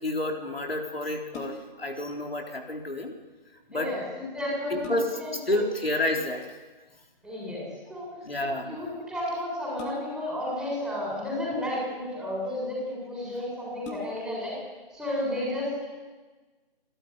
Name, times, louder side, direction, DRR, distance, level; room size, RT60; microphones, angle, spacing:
voice 1, 0.0-3.1 3.7-3.9 4.7-6.5 8.3-8.8 13.5-13.6, left 1 dB, 85° left, 2 dB, 4.0 m, -30 dB
sound 1, 1.3-1.9 3.9-4.0 4.5-5.4 6.9-7.3 9.8-10.4 11.3-12.0 12.8-12.9 13.2-13.3 13.8-14.4 14.9-15.0, left 3 dB, 15° left, 2.2 m, -42 dB
voice 2, 3.7-5.6 7.2-8.2 8.6-14.6 14.9-15.9, left 1 dB, ahead, -4 dB, 7.4 m, -32 dB
28.5 x 12.5 x 9.8 m, 1.3 s
figure-of-eight pair, 150°, 29 cm